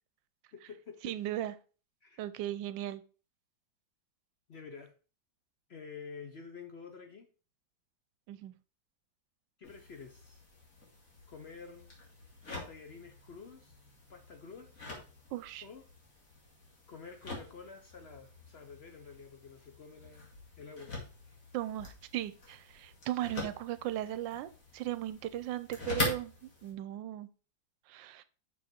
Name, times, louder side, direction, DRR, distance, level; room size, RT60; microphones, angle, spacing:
voice 1, 0.5-1.1 2.0-2.2 4.5-4.9 5.7-7.3 9.6-10.4 11.3-11.9 12.6-13.8 14.1-14.7 15.6-15.8 16.9-20.9 21.2-21.4, left 5 dB, 60° left, 5 dB, 0.6 m, -49 dB
voice 2, 1.0-1.5 2.2-3.0 8.3-8.5 15.3-15.7 21.5-27.3 27.9-28.2, right 13 dB, 80° right, 14 dB, 1.3 m, -37 dB
sound 1, 9.6-26.7, left 2 dB, 45° left, 2.4 m, -44 dB
6.3 x 5.4 x 4.3 m, 0.36 s
omnidirectional pair, 2.1 m